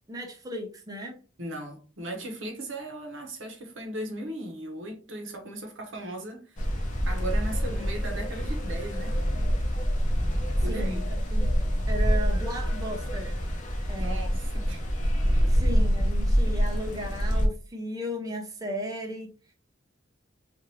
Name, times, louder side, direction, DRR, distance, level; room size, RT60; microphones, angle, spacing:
voice 1, 0.1-1.2 10.7-11.5 11.9-13.4 13.9-14.4 15.5-19.3, equal, 20° right, 0.6 m, -35 dB
voice 2, 1.4-6.7 7.1-9.2 10.6-11.1 14.0-14.8 15.7-15.8, right 1 dB, 70° right, 0.9 m, -37 dB
sound 1, 6.6-17.5, equal, 40° left, 0.7 m, -26 dB
2.8 x 2.5 x 3.0 m
head